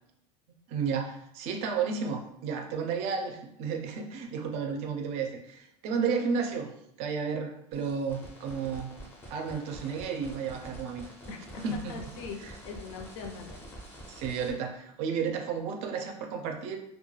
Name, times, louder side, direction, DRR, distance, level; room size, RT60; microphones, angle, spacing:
voice 1, 0.7-8.9 9.3-11.0 11.6-11.9 14.1-16.8, right 6 dB, 50° right, 4 dB, 0.4 m, -32 dB
sound 1, 7.7-14.5, right 1 dB, 15° left, 0.4 m, -47 dB
voice 2, 11.3-13.7, left 4 dB, 85° left, 3 dB, 0.5 m, -42 dB
2.2 x 2.1 x 3.1 m, 0.77 s
cardioid pair, 165°, 14 cm